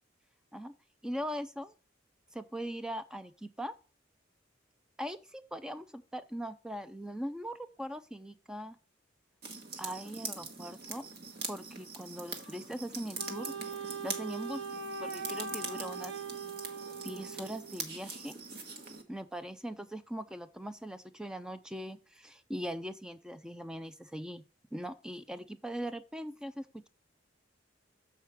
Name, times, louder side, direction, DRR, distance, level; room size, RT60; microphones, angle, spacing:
voice 1, 1.0-1.7 2.3-3.7 5.0-8.8 9.8-11.1 11.5-13.5 14.0-14.6 15.0-16.2 17.0-18.3 19.1-24.4 24.7-26.9, equal, 5° right, 11 dB, 0.4 m, -40 dB
sound 1, 9.4-19.0, right 4 dB, 50° right, 1.3 m, -43 dB
Wind instrument woodwind instrument, 13.2-17.8, right 5 dB, 70° right, 0.8 m, -41 dB
7.3 x 4.7 x 4.4 m, 0.36 s
head